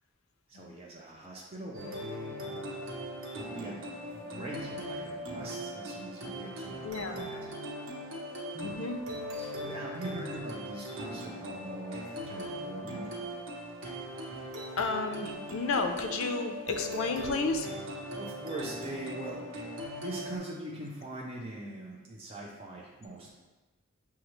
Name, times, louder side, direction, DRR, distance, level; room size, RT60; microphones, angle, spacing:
voice 1, 0.5-2.4 3.3-7.5 8.5-8.8 9.3-13.1 17.8-19.5 20.0-23.3, right 1 dB, 25° right, -3 dB, 0.5 m, -42 dB
sound 1, 1.7-20.4, equal, 80° right, 0.9 m, -40 dB
voice 2, 6.8-7.3 8.6-9.0 14.8-17.7, left 3 dB, 75° left, 6 dB, 0.4 m, -32 dB
6.3 x 2.3 x 3.0 m, 1.2 s
head